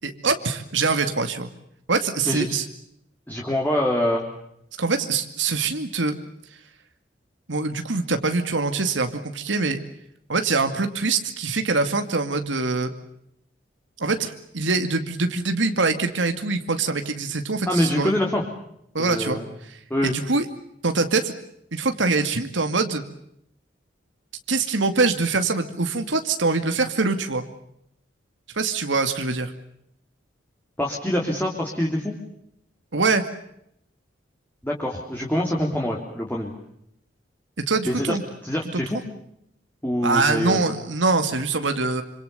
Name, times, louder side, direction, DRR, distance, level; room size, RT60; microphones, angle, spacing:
voice 1, 0.0-1.5 1.9-2.7 4.8-6.1 7.5-9.8 10.3-12.9 14.0-18.1 18.9-19.4 20.0-20.5 20.8-21.3 21.7-23.0 24.5-27.5 28.5-29.5 32.9-33.2 37.6-38.2 38.7-38.8 40.0-42.0, right 3 dB, 85° right, 7 dB, 2.3 m, -24 dB
voice 2, 3.3-4.2 17.7-18.4 19.0-19.5 19.9-20.1 30.8-32.2 34.6-36.5 37.8-38.2 38.4-39.0 39.8-40.7, left 1 dB, 10° left, -1 dB, 3.3 m, -25 dB
26.5 x 26.5 x 6.9 m, 0.76 s
head